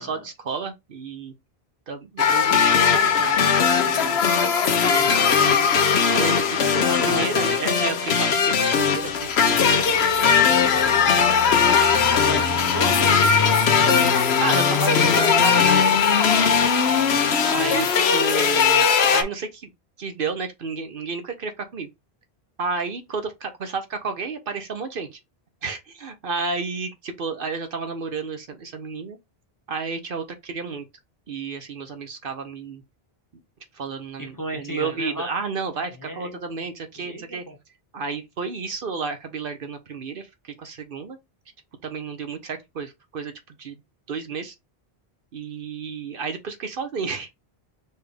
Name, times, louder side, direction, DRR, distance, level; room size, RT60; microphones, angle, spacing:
voice 1, 0.0-1.3 1.9-3.5 3.8-4.2 4.8-5.8 6.1-9.7 10.4-11.3 12.1-13.1 14.4-16.0 17.5-17.9 18.1-19.7 20.0-21.9 22.6-25.2 25.6-29.2 29.7-30.9 31.3-32.8 33.7-37.4 37.9-41.2 41.8-43.8 44.1-44.5 45.3-47.3, right 4 dB, 60° right, 0.9 m, -32 dB
sound 1, 2.2-19.2, left 6 dB, 80° left, 1.0 m, -19 dB
voice 2, 4.6-5.8 6.6-7.5 12.2-14.2 16.8-17.2 17.5-17.9 34.2-35.3 36.0-36.4 37.0-37.6, equal, 20° left, 0.9 m, -35 dB
4.5 x 3.4 x 3.3 m
omnidirectional pair, 1.1 m